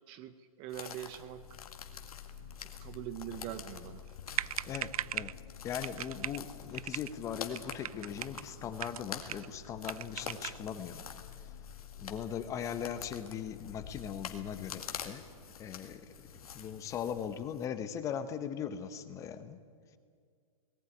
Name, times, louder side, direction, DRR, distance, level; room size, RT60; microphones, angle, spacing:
voice 1, 0.1-1.4 2.6-4.0, right 11 dB, 25° right, 13 dB, 0.7 m, -43 dB
sound 1, 0.7-17.6, left 7 dB, 90° left, 2.0 m, -48 dB
sound 2, 0.9-17.4, left 8 dB, 60° left, 2.6 m, -52 dB
sound 3, 4.1-4.2 4.3-5.4 5.8-6.4 6.7-7.1 7.5-8.4 8.8-9.5 9.8-10.6, right 11 dB, 80° right, 0.5 m, -39 dB
voice 2, 4.6-5.3 5.6-11.0 12.0-15.2 15.6-16.1 16.5-19.6, left 8 dB, 15° left, 11 dB, 0.9 m, -39 dB
19.0 x 15.5 x 9.8 m, 2.1 s
hypercardioid pair, 160°, 18 cm